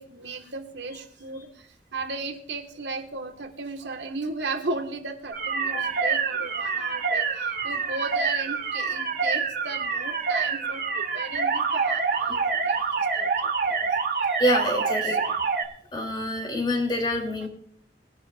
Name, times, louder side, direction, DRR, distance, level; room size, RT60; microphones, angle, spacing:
voice 1, 0.0-13.9 14.8-15.4, right 3 dB, 85° right, 4 dB, 2.0 m, -36 dB
sound 1, 5.3-15.6, right 5 dB, 55° right, 1.8 m, -26 dB
voice 2, 14.3-15.4 15.9-17.5, left 1 dB, 25° left, 1 dB, 3.5 m, -26 dB
20.5 x 11.0 x 2.7 m, 0.62 s
head